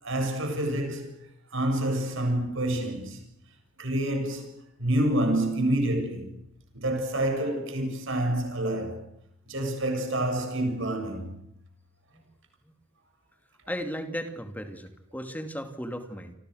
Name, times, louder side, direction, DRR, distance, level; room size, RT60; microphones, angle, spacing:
voice 1, 0.0-1.1 1.5-3.2 3.8-6.3 6.7-9.0 9.5-11.4, right 1 dB, 60° right, 7.5 m, -28 dB
voice 2, 13.7-16.3, equal, 10° left, 2.6 m, -35 dB
28.5 x 26.0 x 6.6 m
head